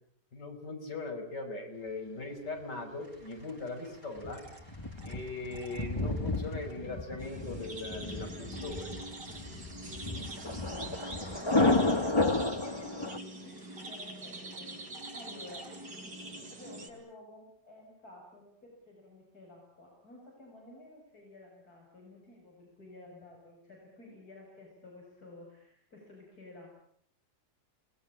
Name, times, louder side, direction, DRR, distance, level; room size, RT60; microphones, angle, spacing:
voice 1, 0.3-4.4 5.0-8.9, left 3 dB, 90° left, 3 dB, 6.2 m, -40 dB
sound 1, 3.0-6.8 8.0-12.7 13.6-16.1, right 2 dB, 80° right, 6.5 m, -56 dB
Thunder, 4.2-13.2, left 2 dB, 15° left, 1.3 m, -32 dB
sound 2, 7.2-16.9, right 2 dB, 65° right, 4.8 m, -44 dB
voice 2, 13.4-14.7 15.1-15.7 16.5-26.8, left 2 dB, 60° left, -2 dB, 7.7 m, -53 dB
28.5 x 21.0 x 8.7 m, 0.67 s
omnidirectional pair, 1.8 m